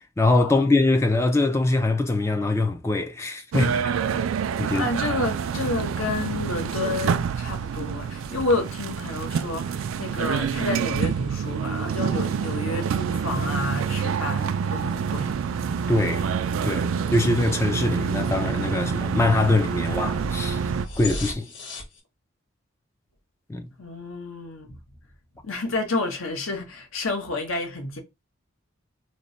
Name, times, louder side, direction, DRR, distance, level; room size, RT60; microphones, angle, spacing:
voice 1, 0.0-3.9 4.6-4.9 15.9-16.3 16.6-20.6 21.0-21.5 23.5-23.7, left 2 dB, 15° left, 0.3 m, -23 dB
sound 1, 3.5-20.9, right 6 dB, 75° right, 0.3 m, -27 dB
voice 2, 4.7-15.3 23.8-24.8 25.4-28.0, left 3 dB, 85° left, 1.1 m, -30 dB
sound 2, 5.7-22.0, left 1 dB, 60° left, 1.5 m, -44 dB
3.2 x 2.1 x 3.9 m
head